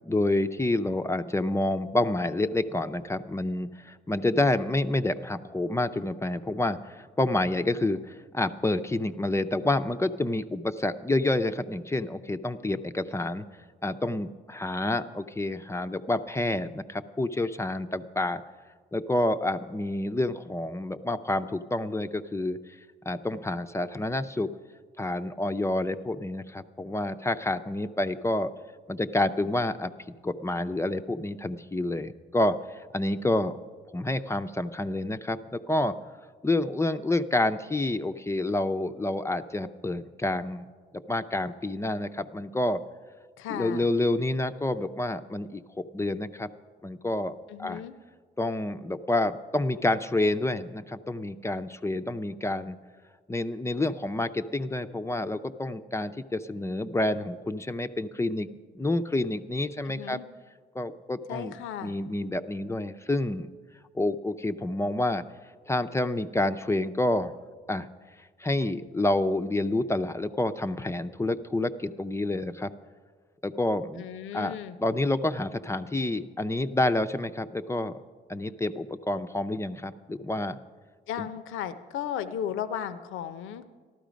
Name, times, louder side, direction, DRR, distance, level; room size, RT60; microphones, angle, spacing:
voice 1, 0.0-13.5 13.8-18.4 18.9-22.6 23.1-24.5 25.0-28.5 28.9-29.9 30.2-33.5 33.9-36.0 36.4-40.6 41.1-42.8 43.5-46.5 46.8-47.8 48.4-52.8 53.3-58.5 58.7-60.2 60.7-61.5 61.8-63.5 63.9-65.2 65.7-67.3 67.7-67.9 68.4-72.7 73.4-74.0 74.3-74.5 74.8-78.0 78.3-80.6 81.2-81.3, left 2 dB, 15° left, 8 dB, 0.5 m, -28 dB
voice 2, 43.4-43.9 47.5-47.9 59.8-60.2 61.3-62.0 73.9-74.8 81.1-83.6, left 9 dB, 85° left, 12 dB, 0.7 m, -35 dB
13.5 x 12.5 x 5.1 m, 1.5 s
cardioid pair, 90°, 20 cm